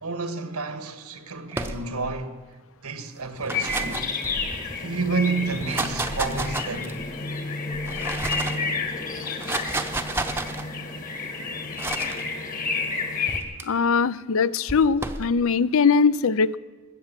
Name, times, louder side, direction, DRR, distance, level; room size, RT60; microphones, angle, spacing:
voice 1, 0.0-2.4 2.8-4.0 4.8-7.0, right 4 dB, 90° right, 1.5 m, -30 dB
sound 1, 1.5-2.2 3.2-4.7 5.5-7.1 7.7-8.7 9.2-10.6 11.8-12.2 13.3-13.6 14.7-15.3, right 2 dB, 10° right, 0.7 m, -31 dB
sound 2, 3.5-13.4, left 4 dB, 35° left, 1.7 m, -30 dB
voice 2, 13.6-16.6, left 5 dB, 65° left, 0.5 m, -21 dB
20.5 x 8.4 x 7.5 m
head